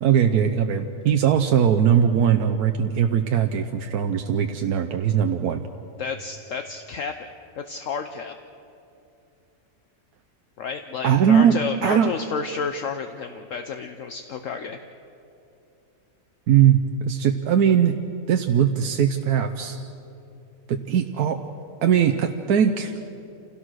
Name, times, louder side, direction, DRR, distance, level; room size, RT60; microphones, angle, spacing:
voice 1, 0.0-5.6 11.0-12.1 16.5-18.0 18.3-19.8 20.7-21.4 21.8-22.9, right 8 dB, 90° right, 5 dB, 1.3 m, -20 dB
voice 2, 6.0-7.3 7.6-8.3 10.6-14.8, left 5 dB, 60° left, 7 dB, 1.1 m, -31 dB
28.0 x 17.0 x 6.3 m, 2.7 s
omnidirectional pair, 1.6 m